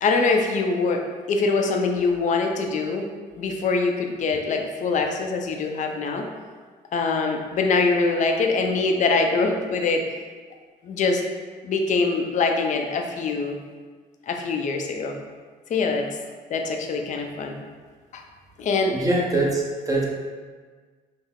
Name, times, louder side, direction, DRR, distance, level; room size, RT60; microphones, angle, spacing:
voice 1, 0.0-3.1 3.4-6.3 6.9-10.1 10.8-11.2 11.6-13.6 14.3-15.2 15.7-16.1 16.5-17.6 18.1-18.2 18.6-19.0, left 4 dB, 45° left, 3 dB, 0.5 m, -23 dB
voice 2, 18.9-20.0, right 2 dB, 20° right, -3 dB, 0.8 m, -23 dB
5.5 x 2.0 x 3.6 m, 1.5 s
cardioid pair, 110°, 17 cm